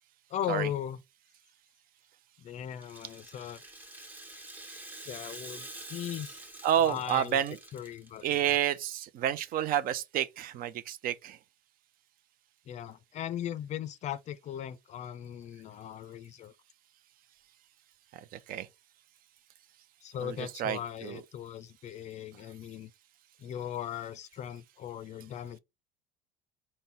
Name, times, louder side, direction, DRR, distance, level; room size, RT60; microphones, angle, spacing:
voice 1, 0.3-1.0 2.4-3.6 5.1-6.4 6.8-7.4 7.7-8.6 12.7-16.5 20.0-22.9 23.4-25.6, left 10 dB, 40° left, 0.4 m, -38 dB
Rattle (instrument), 2.7-8.2, right 2 dB, 10° right, 1.4 m, -47 dB
voice 2, 6.6-7.6 8.2-11.4 18.5-18.7 20.2-21.2, right 10 dB, 50° right, 0.5 m, -30 dB
3.7 x 2.2 x 4.2 m
supercardioid pair, 110°, 18 cm